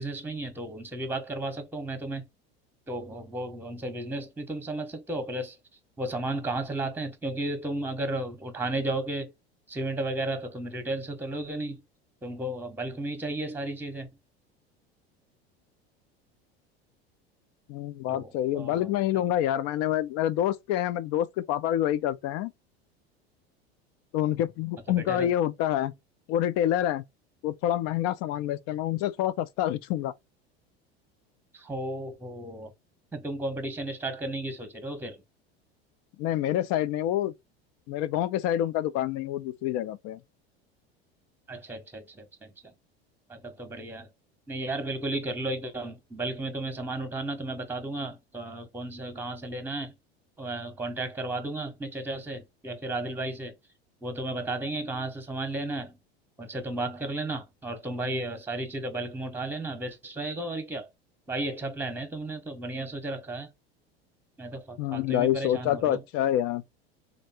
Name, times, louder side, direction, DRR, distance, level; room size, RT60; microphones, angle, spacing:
voice 1, 0.0-2.3 2.9-5.6 6.0-9.3 9.7-11.8 12.2-14.1 18.1-19.2 24.9-25.3 31.5-32.7 33.1-35.2 41.5-42.7 43.3-44.1 44.5-49.9 50.4-53.6 54.0-56.0 56.4-60.9 61.3-63.5 64.4-66.0, right 2 dB, 5° right, 1.2 m, -34 dB
voice 2, 17.7-22.5 24.1-25.9 26.3-27.0 27.4-30.1 36.2-37.3 37.9-40.2 64.8-66.6, left 12 dB, 50° left, 0.6 m, -27 dB
3.1 x 2.6 x 4.3 m
hypercardioid pair, 80°, 32 cm